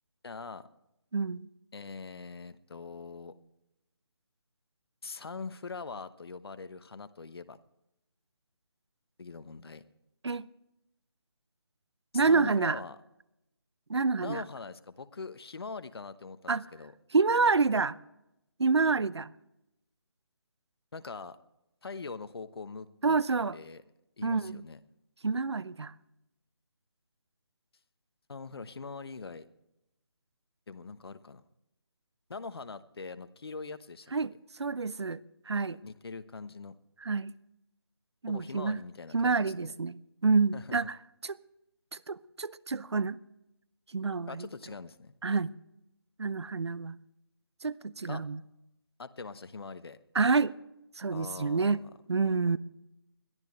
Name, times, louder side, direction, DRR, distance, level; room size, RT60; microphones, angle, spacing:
voice 1, 0.2-0.7 1.7-3.3 5.0-7.6 9.2-9.8 12.1-13.0 14.2-16.9 20.9-21.4 21.8-23.2 23.5-23.8 24.2-24.8 28.3-29.5 30.7-31.4 32.3-34.1 35.8-36.8 38.3-39.7 40.5-40.8 44.3-45.1 48.1-48.2 49.0-50.0 51.1-51.9 52.2-52.6, left 4 dB, 65° left, 1.1 m, -42 dB
voice 2, 1.1-1.5 10.2-10.5 12.1-12.8 13.9-14.4 16.5-16.6 17.1-18.0 18.6-19.3 23.0-23.6 24.2-24.6 25.2-25.9 34.1-34.3 34.6-35.2 35.5-35.8 37.0-37.3 38.2-38.8 39.1-41.0 41.2-41.4 41.9-43.2 43.9-44.5 45.2-45.5 46.2-47.0 47.6-48.4 50.1-50.5 51.0-51.8 52.1-52.6, right 4 dB, 85° right, 0.7 m, -28 dB
21.5 x 14.0 x 3.2 m
figure-of-eight pair, 160°, 14 cm